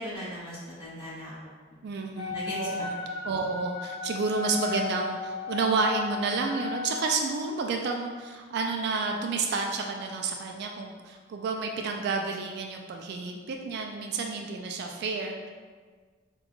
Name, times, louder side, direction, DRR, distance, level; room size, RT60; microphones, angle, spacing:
voice 1, 0.0-1.5 2.3-2.9, equal, 25° left, -10 dB, 1.4 m, -38 dB
voice 2, 1.8-2.9 3.2-15.5, right 4 dB, 55° right, 2 dB, 0.3 m, -30 dB
Wind instrument woodwind instrument, 2.2-7.2, left 4 dB, 90° left, 0.6 m, -35 dB
5.2 x 2.3 x 2.3 m, 1.5 s
head